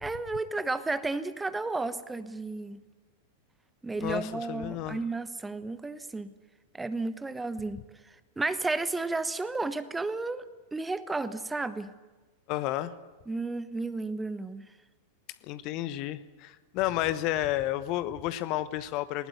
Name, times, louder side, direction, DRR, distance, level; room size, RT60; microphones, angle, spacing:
voice 1, 0.0-2.8 3.8-6.3 6.7-7.9 8.4-10.4 10.7-11.9 13.3-14.7, right 3 dB, 10° right, 14 dB, 1.1 m, -32 dB
voice 2, 4.0-5.0 12.5-12.9 15.4-19.3, left 14 dB, 40° left, 14 dB, 1.0 m, -31 dB
19.5 x 19.5 x 9.5 m, 1.2 s
figure-of-eight pair, 90°, 0 cm